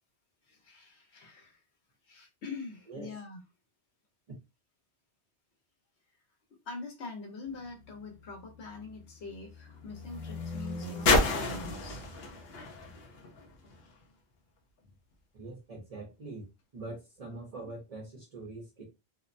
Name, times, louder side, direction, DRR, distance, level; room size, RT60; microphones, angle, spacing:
voice 1, 0.5-1.6 2.1-3.4 6.6-12.0, left 4 dB, 90° left, 1.1 m, -44 dB
sound 1, 7.5-14.0 14.9-15.0, left 2 dB, 70° left, 0.9 m, -32 dB
voice 2, 15.3-16.5 16.7-18.8, right 2 dB, 40° right, 0.7 m, -43 dB
2.6 x 2.0 x 2.5 m
omnidirectional pair, 1.1 m